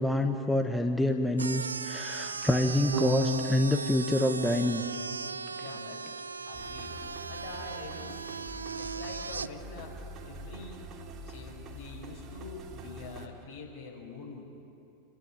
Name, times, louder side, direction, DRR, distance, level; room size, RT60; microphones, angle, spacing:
voice 1, 0.0-4.8, left 1 dB, 5° left, 5 dB, 1.2 m, -27 dB
sound 1, 1.4-9.5, right 5 dB, 85° right, 0.5 m, -38 dB
Electric guitar / Bass guitar, 2.9-9.3, right 1 dB, 60° right, 3.0 m, -38 dB
voice 2, 5.6-6.1 6.4-8.3 8.8-10.8 11.2-14.4, left 4 dB, 60° left, 0 dB, 5.7 m, -45 dB
sound 2, 6.5-13.3, right 2 dB, 35° right, 3.0 m, -45 dB
28.0 x 12.5 x 9.8 m, 2.7 s
figure-of-eight pair, 90°, 0 cm